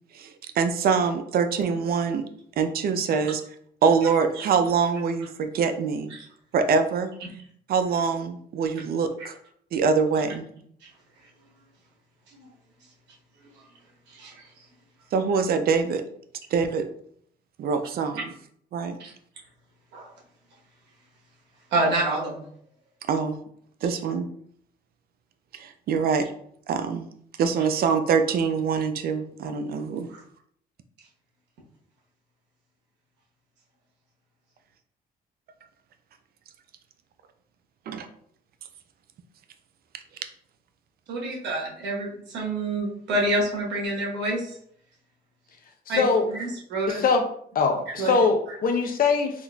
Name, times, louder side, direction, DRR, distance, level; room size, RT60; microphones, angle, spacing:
voice 1, 0.1-2.2 2.6-3.4 3.8-6.1 6.5-7.1 7.7-9.4 9.7-10.4 15.1-16.0 16.5-16.8 17.6-18.3 18.7-19.0 23.1-23.4 23.8-24.3 25.5-26.3 26.7-27.1 27.4-30.1 37.9-38.1, right 5 dB, 60° right, 8 dB, 0.4 m, -24 dB
voice 2, 14.1-14.4 19.9-20.1 21.7-22.4 23.8-23.9 41.1-44.6 45.9-47.0 47.9-48.1, right 2 dB, 85° right, -3 dB, 1.1 m, -28 dB
voice 3, 46.9-47.2 47.5-49.4, left 4 dB, 55° left, 5 dB, 0.6 m, -22 dB
3.7 x 2.4 x 2.3 m, 0.65 s
cardioid pair, 80°, 18 cm